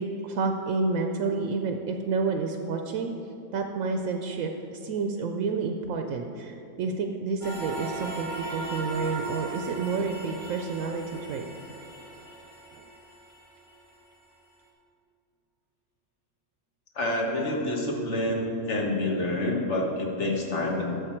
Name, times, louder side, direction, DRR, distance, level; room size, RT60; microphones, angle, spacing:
voice 1, 0.0-3.1 3.5-11.5, right 4 dB, 80° right, 4 dB, 1.0 m, -29 dB
sound 1, 7.4-13.6, right 2 dB, 35° left, 1.9 m, -37 dB
voice 2, 16.9-21.0, left 1 dB, 60° left, -1 dB, 1.6 m, -28 dB
11.5 x 6.9 x 4.4 m, 2.9 s
omnidirectional pair, 1.4 m